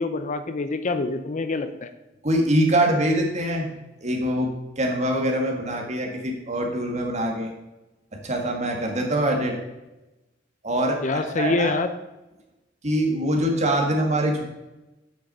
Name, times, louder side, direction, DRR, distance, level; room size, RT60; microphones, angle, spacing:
voice 1, 0.0-1.9 11.0-11.9, left 3 dB, 40° left, 10 dB, 0.6 m, -26 dB
voice 2, 2.2-3.7 4.0-4.5 4.8-7.5 8.2-9.6 10.6-11.8 12.8-14.4, right 1 dB, 40° right, 2 dB, 1.8 m, -23 dB
8.2 x 6.2 x 5.4 m, 1.0 s
head